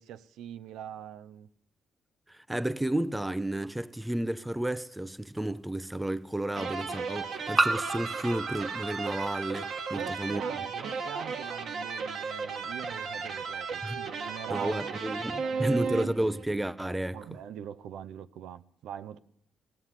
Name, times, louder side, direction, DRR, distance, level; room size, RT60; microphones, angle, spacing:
voice 1, 0.0-1.5 9.9-16.0 17.1-19.2, right 9 dB, 80° right, 0.6 m, -43 dB
voice 2, 2.3-10.4 13.8-14.0 14.5-17.2, right 1 dB, 10° right, 0.6 m, -32 dB
sound 1, 3.6-3.7 5.4-5.5 7.6-10.1, right 2 dB, 25° right, 0.9 m, -32 dB
sound 2, 6.5-16.5, right 5 dB, 65° right, 1.5 m, -35 dB
17.0 x 7.4 x 9.7 m
cardioid pair, 90°, 0 cm